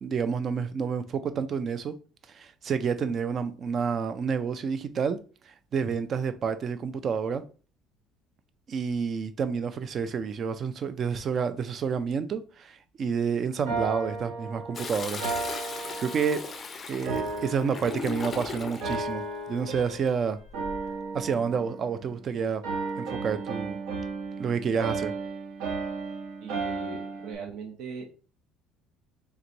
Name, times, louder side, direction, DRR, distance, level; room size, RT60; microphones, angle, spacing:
voice 1, 0.0-2.0 2.3-5.2 5.5-7.4 8.7-15.3 15.6-16.5 16.9-20.4 21.1-22.6 23.0-23.8 24.4-25.1, right 6 dB, 30° right, 0.4 m, -29 dB
sound 1, 13.7-16.6 17.0-18.4 18.8-20.2 20.5-22.3 22.6-27.3, right 3 dB, 75° right, 1.1 m, -34 dB
Toilet flush, 14.7-19.1 20.4-20.9, left 4 dB, 25° left, 0.5 m, -38 dB
voice 2, 26.4-28.1, right 5 dB, 55° right, 0.9 m, -39 dB
3.4 x 3.1 x 3.9 m
cardioid pair, 165°, 0 cm